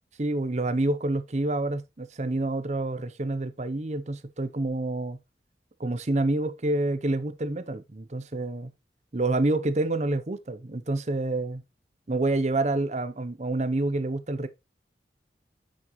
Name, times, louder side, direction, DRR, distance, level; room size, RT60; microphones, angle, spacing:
voice 1, 0.2-5.2 5.8-8.7 9.1-11.6 12.1-14.5, right 2 dB, 40° right, 0.7 m, -28 dB
9.0 x 6.4 x 3.1 m
head